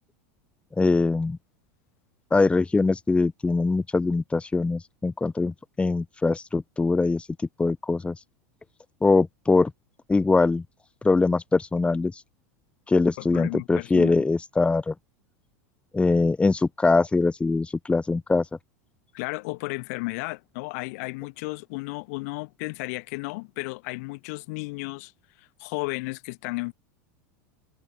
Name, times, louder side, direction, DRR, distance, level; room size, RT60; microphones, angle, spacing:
voice 1, 0.8-1.4 2.3-7.3 7.6-8.2 9.0-9.7 10.1-10.6 11.0-12.2 12.9-14.9 15.9-18.4, left 3 dB, 15° left, 1.5 m, -22 dB
voice 2, 13.2-14.2 19.1-25.1 25.4-26.7, left 27 dB, 65° left, 1.7 m, -33 dB
hypercardioid pair, 90°, 9 cm